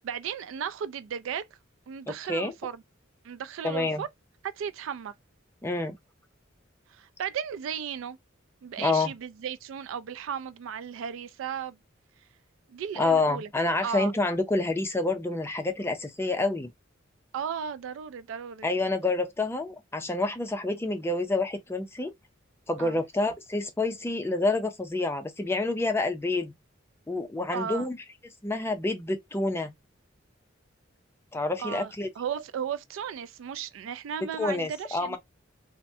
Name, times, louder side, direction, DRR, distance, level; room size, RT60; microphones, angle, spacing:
voice 1, 0.0-1.5 1.9-2.8 3.2-4.1 4.4-5.1 6.9-8.2 8.6-11.8 12.7-13.5 13.8-14.1 17.3-18.7 22.8-23.0 27.5-27.9 31.6-35.2, right 8 dB, 70° right, 0.3 m, -35 dB
voice 2, 3.6-4.0 5.6-6.0 8.8-9.1 13.0-16.7 18.6-22.1 22.7-26.5 27.1-28.0 28.4-29.7 31.3-32.1 34.4-35.2, left 2 dB, 10° left, 0.4 m, -28 dB
3.2 x 2.1 x 2.6 m
head